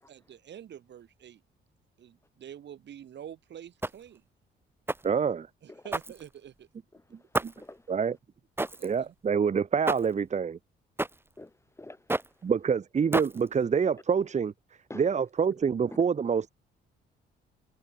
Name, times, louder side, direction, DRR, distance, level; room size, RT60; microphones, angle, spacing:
voice 1, 0.1-1.4 2.0-4.2 5.6-6.7 8.8-9.1, right 9 dB, 60° right, 3.4 m, -47 dB
sound 1, 3.8-4.2 4.9-5.2 5.9-6.6 7.3-7.7 8.6-8.9 9.9-10.2 11.0-11.3 12.1-12.4 13.1-13.6, right 2 dB, 10° right, 1.4 m, -31 dB
voice 2, 5.0-5.5 7.4-7.5 7.9-8.1 8.8-10.6 12.4-14.5 15.0-16.5, right 6 dB, 35° right, 1.1 m, -26 dB
voice 3, 6.9-7.9 8.6-8.9 11.4-12.5 14.9-15.1, left 2 dB, 15° left, 3.7 m, -49 dB
cardioid pair, 90°, 20 cm